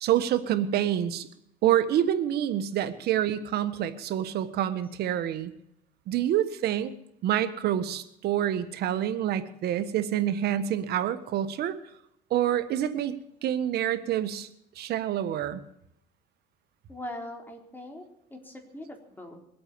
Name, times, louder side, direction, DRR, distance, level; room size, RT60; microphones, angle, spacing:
voice 1, 0.0-1.3 1.6-5.5 6.1-6.9 7.2-11.8 12.3-13.1 13.4-14.5 14.8-15.6, right 11 dB, 70° right, 11 dB, 1.4 m, -27 dB
voice 2, 16.9-19.4, left 1 dB, 10° left, 2 dB, 4.0 m, -41 dB
22.5 x 8.7 x 6.8 m, 0.78 s
cardioid pair, 110°, 17 cm